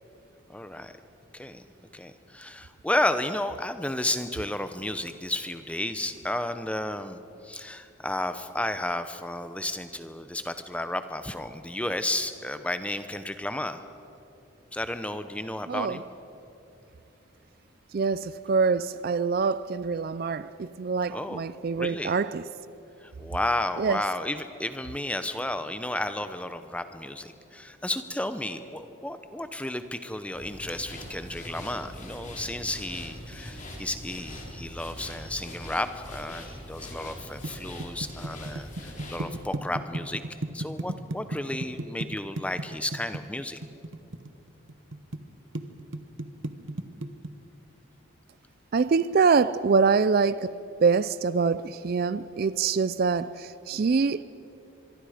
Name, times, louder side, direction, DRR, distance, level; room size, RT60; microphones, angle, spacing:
voice 1, 0.5-0.9 1.3-1.6 1.9-13.8 14.7-16.0 21.1-21.4 21.7-22.2 23.0-40.2 40.5-43.6, left 1 dB, 5° left, 0.8 m, -32 dB
voice 2, 15.7-16.0 17.9-22.4 23.8-24.0 48.7-54.2, right 5 dB, 45° right, 0.4 m, -25 dB
sound 1, 30.3-39.3, left 1 dB, 35° left, 3.5 m, -42 dB
sound 2, 37.0-45.2 45.6-47.3, right 2 dB, 65° right, 1.0 m, -34 dB
24.5 x 23.5 x 5.0 m
head